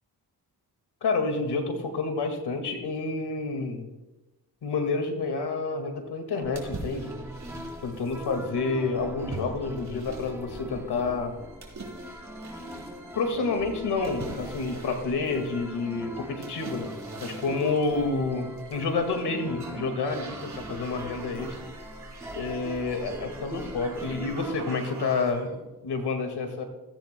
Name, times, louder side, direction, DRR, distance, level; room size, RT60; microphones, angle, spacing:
voice 1, 1.0-3.9 4.6-7.1 7.8-11.3 13.2-16.9 17.2-21.6 22.4-26.6, left 4 dB, 80° left, 6 dB, 2.0 m, -29 dB
sound 1, 6.4-24.5, equal, 5° right, 1.3 m, -41 dB
sound 2, 6.6-8.4 9.3-10.6 11.6-13.0 14.0-15.7 16.4-17.9 18.6-19.2 19.5-25.5, right 3 dB, 45° right, 3.4 m, -44 dB
sound 3, 11.1-25.3, right 1 dB, 75° right, 3.9 m, -53 dB
16.0 x 14.5 x 2.2 m, 1.1 s
cardioid pair, 70°, 39 cm